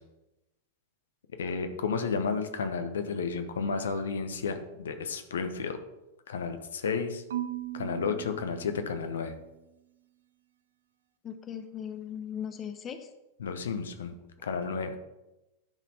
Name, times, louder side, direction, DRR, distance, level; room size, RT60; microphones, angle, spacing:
voice 1, 1.4-5.8 6.3-7.2 7.7-9.3 13.4-14.1 14.4-15.0, left 5 dB, 65° left, 8 dB, 0.9 m, -32 dB
Marimba xylophone / Wood, 7.3-9.5, right 13 dB, 65° right, 0.5 m, -38 dB
voice 2, 11.2-13.0, left 8 dB, 25° left, 8 dB, 0.7 m, -38 dB
10.5 x 4.2 x 5.5 m, 0.98 s
figure-of-eight pair, 90°, 0 cm